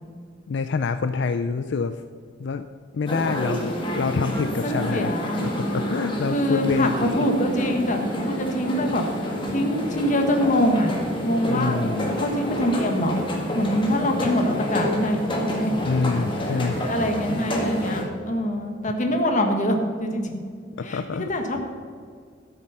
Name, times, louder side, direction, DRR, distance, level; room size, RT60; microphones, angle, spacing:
voice 1, 0.5-2.0 2.4-2.6 2.9-7.3 11.5-12.2 15.8-16.8 17.3-17.4 20.8-21.3, left 4 dB, 65° left, 10 dB, 0.4 m, -27 dB
sound 1, 3.1-18.0, equal, 25° left, 1.8 m, -28 dB
voice 2, 4.6-5.5 6.3-9.0 9.5-10.9 11.2-11.8 12.1-13.2 13.5-15.7 16.0-16.2 16.5-20.3 20.8-21.6, equal, 45° left, 4 dB, 1.5 m, -24 dB
13.0 x 7.6 x 5.6 m, 2.1 s
head